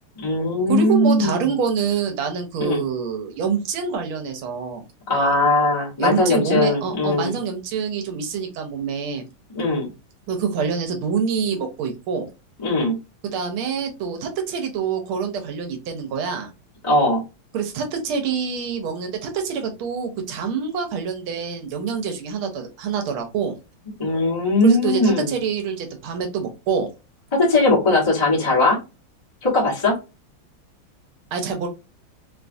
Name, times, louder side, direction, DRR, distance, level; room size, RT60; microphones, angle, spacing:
voice 1, 0.2-1.4 2.6-2.8 5.1-7.3 9.5-9.9 12.6-13.0 16.8-17.2 24.0-25.3 27.3-28.8 29.4-30.0, left 2 dB, 20° left, -5 dB, 0.8 m, -19 dB
voice 2, 0.7-4.8 6.0-9.2 10.3-12.3 13.2-16.5 17.5-23.6 24.6-26.9 31.3-31.7, right 6 dB, 80° right, 5 dB, 1.6 m, -26 dB
3.6 x 2.3 x 2.5 m, 0.28 s
omnidirectional pair, 2.3 m